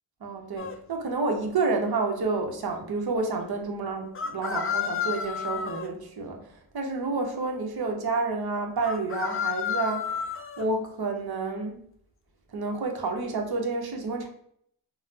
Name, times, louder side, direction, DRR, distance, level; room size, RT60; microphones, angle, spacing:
voice 1, 0.2-11.8 12.5-14.3, right 3 dB, 55° right, 3 dB, 0.8 m, -30 dB
sound 1, 0.6-0.8 4.2-5.9 8.8-10.7, left 7 dB, 30° left, 0.4 m, -31 dB
3.8 x 2.0 x 2.7 m, 0.67 s
cardioid pair, 45°, 45 cm